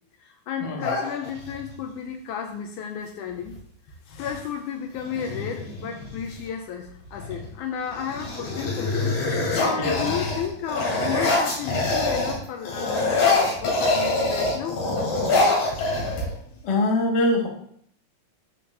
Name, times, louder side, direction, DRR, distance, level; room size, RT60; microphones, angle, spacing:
voice 1, 0.2-3.6 4.2-14.8, left 8 dB, 80° left, 4 dB, 1.9 m, -33 dB
sound 1, 0.8-1.7 3.4-3.6 3.9-4.4 4.9-6.4 7.1-7.5 7.8-12.4 12.6-16.6, left 2 dB, 65° left, 3.8 m, -25 dB
voice 2, 9.8-10.1 15.8-15.9 16.6-17.5, left 2 dB, 45° left, 0 dB, 1.4 m, -24 dB
12.5 x 4.4 x 3.3 m, 0.66 s
omnidirectional pair, 3.8 m